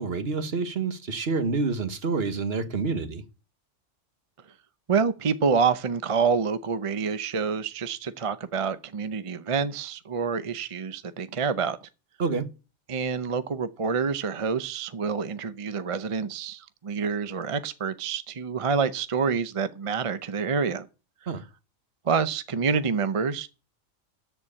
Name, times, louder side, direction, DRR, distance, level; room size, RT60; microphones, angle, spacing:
voice 1, 0.0-3.2 12.2-12.5 21.3-21.4, right 4 dB, 50° right, 1.3 m, -28 dB
voice 2, 4.9-11.8 12.9-20.9 22.0-23.5, right 5 dB, 35° right, 0.5 m, -27 dB
13.5 x 4.6 x 8.7 m
omnidirectional pair, 1.3 m